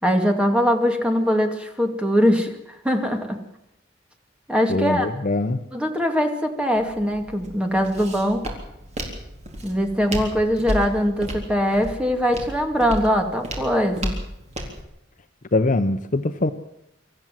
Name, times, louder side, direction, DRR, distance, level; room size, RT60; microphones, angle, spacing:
voice 1, 0.0-2.5 2.8-3.4 4.5-5.1 5.7-8.4 9.6-14.2, equal, 5° right, 4 dB, 2.3 m, -21 dB
voice 2, 4.7-5.6 15.5-16.5, left 2 dB, 45° left, 8 dB, 0.8 m, -22 dB
Walk footsteps, 6.8-14.8, equal, 40° right, 3.9 m, -33 dB
25.0 x 14.0 x 7.6 m, 0.80 s
head